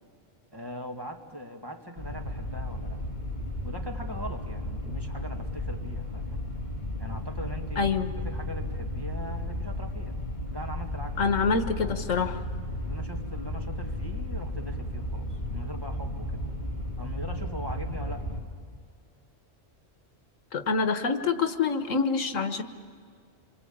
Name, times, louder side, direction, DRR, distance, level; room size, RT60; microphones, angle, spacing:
voice 1, 0.5-3.0 3.6-6.4 7.0-7.9 8.2-10.2 10.5-11.4 11.8-12.0 12.8-16.4 17.0-18.3, equal, 20° right, 2 dB, 2.1 m, -41 dB
sound 1, 2.0-18.4, left 1 dB, 35° left, 3.6 m, -34 dB
voice 2, 7.8-8.1 11.2-12.4 20.5-22.6, left 5 dB, 90° left, 9 dB, 1.7 m, -26 dB
27.5 x 24.5 x 8.7 m, 2.1 s
omnidirectional pair, 1.3 m